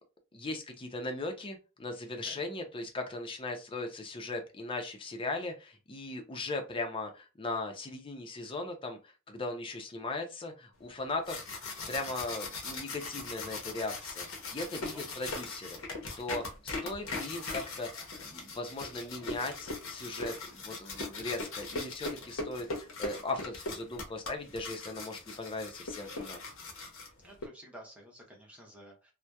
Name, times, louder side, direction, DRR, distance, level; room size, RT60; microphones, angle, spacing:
voice 1, 0.3-15.8 16.2-17.9 18.2-26.4, left 2 dB, 25° left, 4 dB, 0.5 m, -38 dB
voice 2, 2.1-2.4 14.8-15.1 20.7-20.8 27.2-29.1, right 1 dB, 5° right, -1 dB, 0.7 m, -52 dB
sound 1, 11.0-27.5, left 3 dB, 75° left, 0.7 m, -40 dB
2.7 x 2.1 x 2.2 m, 0.30 s
head